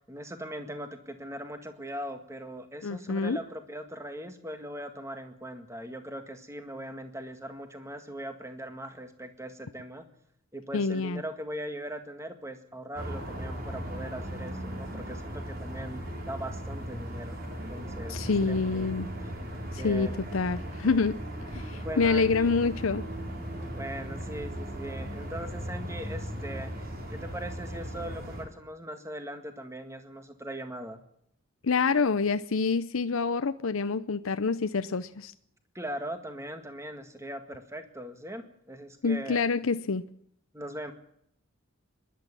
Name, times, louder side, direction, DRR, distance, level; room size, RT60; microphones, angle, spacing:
voice 1, 0.1-10.1 10.5-19.0 19.7-20.1 21.8-22.5 23.7-31.0 35.7-39.5 40.5-40.9, right 1 dB, 15° right, 1.9 m, -40 dB
voice 2, 2.8-3.4 10.7-11.2 18.1-19.1 19.7-21.2 21.5-23.1 31.6-35.3 39.0-40.0, left 4 dB, 75° left, 0.7 m, -27 dB
sound 1, 13.0-28.5, equal, 45° right, 4.3 m, -37 dB
24.0 x 11.5 x 9.9 m
head